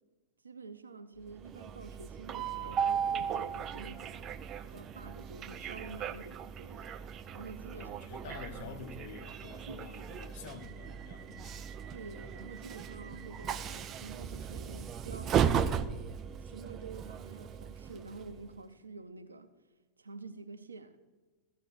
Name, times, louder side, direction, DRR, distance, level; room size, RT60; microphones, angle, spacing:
voice 1, 0.4-4.2 4.6-6.9 7.3-8.5 9.7-10.0 11.9-16.1 16.4-19.5 20.0-21.0, right 4 dB, 75° right, 0.7 m, -48 dB
Train, 1.3-18.5, right 8 dB, 30° right, 0.4 m, -37 dB
voice 2, 7.7-11.6, left 5 dB, 55° left, 1.2 m, -48 dB
14.0 x 6.6 x 6.1 m
figure-of-eight pair, 90°, 0 cm